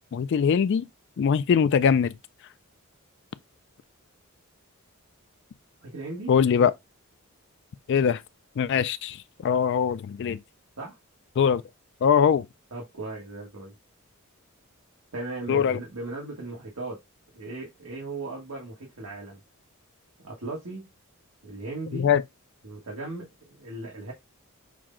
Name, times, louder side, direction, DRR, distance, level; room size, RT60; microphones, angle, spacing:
voice 1, 0.1-0.9 1.2-2.1 6.3-6.7 7.9-8.2 8.6-9.2 9.4-10.4 11.4-11.6 12.0-12.4 15.5-15.8 21.9-22.2, left 7 dB, 55° left, 0.3 m, -22 dB
voice 2, 5.8-6.3 10.8-11.0 12.7-13.7 15.1-17.0 17.3-19.4 20.2-20.9 21.4-22.1 22.6-24.1, right 2 dB, 90° right, 1.4 m, -37 dB
6.1 x 2.2 x 3.7 m
head